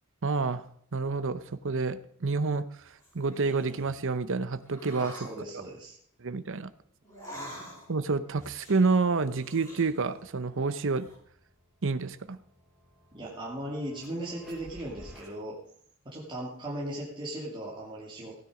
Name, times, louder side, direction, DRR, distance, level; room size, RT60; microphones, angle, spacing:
voice 1, 0.2-0.7 0.9-5.1 6.2-6.7 7.9-11.1 11.8-12.4, right 4 dB, 60° right, 12 dB, 0.8 m, -29 dB
sound 1, 3.0-4.0 4.7-5.4 7.0-8.0 8.3-10.3 10.6-11.1, equal, 15° left, 7.2 m, -46 dB
voice 2, 5.0-6.0 13.1-15.6 16.0-18.4, right 1 dB, 25° right, -5 dB, 2.7 m, -38 dB
sound 2, 11.2-15.3, equal, ahead, 4.8 m, -54 dB
16.5 x 9.4 x 5.1 m, 0.64 s
head